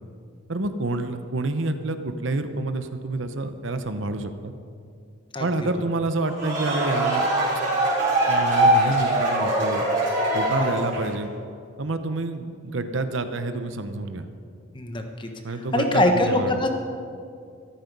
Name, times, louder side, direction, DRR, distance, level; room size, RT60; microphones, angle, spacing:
voice 1, 0.5-4.5 5.4-7.3 8.3-9.8 10.3-11.3 11.8-14.3 15.4-16.6, right 2 dB, 70° right, 9 dB, 0.8 m, -28 dB
sound 1, 6.2-11.2, right 1 dB, 35° right, 4.0 m, -22 dB
voice 2, 14.7-15.3 15.7-16.7, left 1 dB, 25° left, 4 dB, 1.1 m, -23 dB
13.5 x 13.5 x 5.4 m, 2.4 s
head